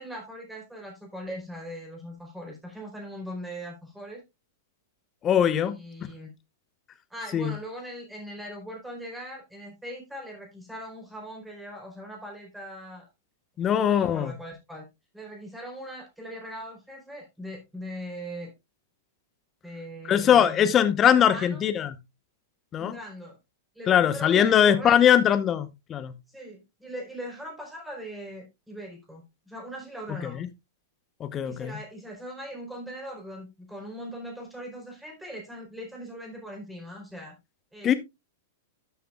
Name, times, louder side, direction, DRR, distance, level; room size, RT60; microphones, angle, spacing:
voice 1, 0.0-4.2 5.6-6.3 7.1-13.0 13.6-14.8 15.1-18.5 19.6-20.7 21.2-21.6 22.8-23.4 23.7-25.0 26.3-30.4 31.4-37.3 37.7-37.9, equal, 5° right, 4.4 m, -40 dB
voice 2, 5.2-5.8 7.3-7.5 13.6-14.3 20.1-21.9 22.7-23.0 23.9-26.1 30.2-30.5 31.2-31.8 37.8-37.9, left 9 dB, 25° left, 1.1 m, -21 dB
13.0 x 7.1 x 2.4 m
figure-of-eight pair, 100°, 0 cm